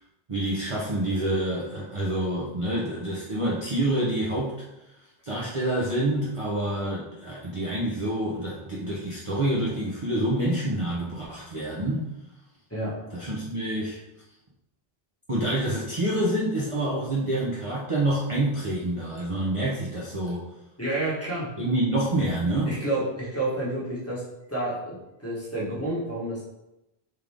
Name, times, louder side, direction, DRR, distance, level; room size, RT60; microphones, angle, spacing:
voice 1, 0.3-4.6 5.2-12.1 13.1-14.0 15.3-20.5 21.6-22.8, right 1 dB, 35° right, -6 dB, 0.7 m, -27 dB
voice 2, 12.7-13.1 20.8-21.5 22.7-24.2 24.5-26.4, right 1 dB, 15° left, -7 dB, 1.2 m, -30 dB
3.7 x 3.3 x 3.5 m, 0.92 s
omnidirectional pair, 1.1 m